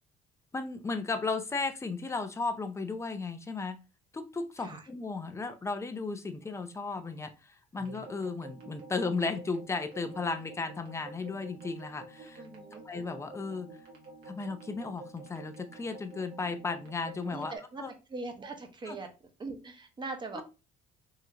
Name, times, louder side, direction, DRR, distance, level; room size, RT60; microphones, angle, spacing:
voice 1, 0.5-3.8 4.1-7.3 7.7-12.4 12.7-13.7 14.3-17.9 18.9-19.0 20.3-20.4, left 4 dB, 15° left, 8 dB, 0.5 m, -35 dB
sound 1, 7.7-17.6, right 2 dB, 75° right, 1.4 m, -50 dB
voice 2, 12.4-12.8 17.3-17.8 18.1-19.1 19.4-20.4, right 3 dB, 25° right, 5 dB, 0.9 m, -41 dB
3.7 x 3.0 x 2.8 m, 0.29 s
cardioid pair, 110°, 17 cm